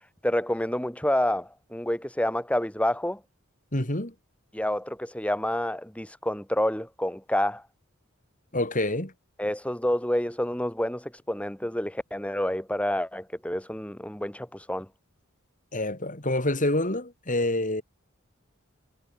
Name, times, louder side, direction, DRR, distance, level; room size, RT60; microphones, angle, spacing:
voice 1, 0.2-3.2 4.5-7.6 9.4-14.9, left 1 dB, 5° left, 5.4 m, -28 dB
voice 2, 3.7-4.1 8.5-9.1 15.7-17.8, left 1 dB, 40° left, 6.0 m, -27 dB
head